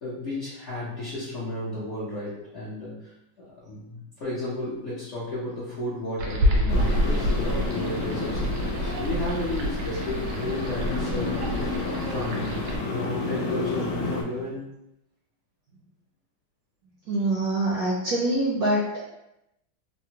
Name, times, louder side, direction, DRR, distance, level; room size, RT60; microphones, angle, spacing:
voice 1, 0.0-3.1 3.4-14.7, left 1 dB, 60° left, -10 dB, 0.7 m, -33 dB
sound 1, 6.2-12.8, equal, 90° right, 1.4 m, -28 dB
sound 2, 6.7-14.2, left 3 dB, 75° left, 1.4 m, -30 dB
voice 2, 17.1-19.0, right 1 dB, 75° right, -5 dB, 0.9 m, -25 dB
3.5 x 2.0 x 2.8 m, 0.87 s
omnidirectional pair, 2.2 m